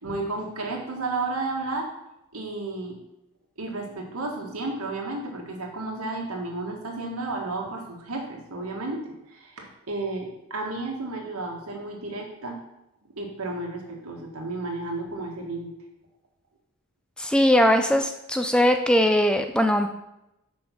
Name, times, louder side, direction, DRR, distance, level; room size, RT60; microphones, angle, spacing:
voice 1, 0.0-1.9 2.3-3.0 3.6-12.6 13.1-15.7, right 2 dB, 85° right, 1 dB, 1.8 m, -32 dB
voice 2, 17.2-19.9, equal, 5° left, 6 dB, 0.4 m, -20 dB
6.3 x 5.3 x 6.2 m, 0.87 s
head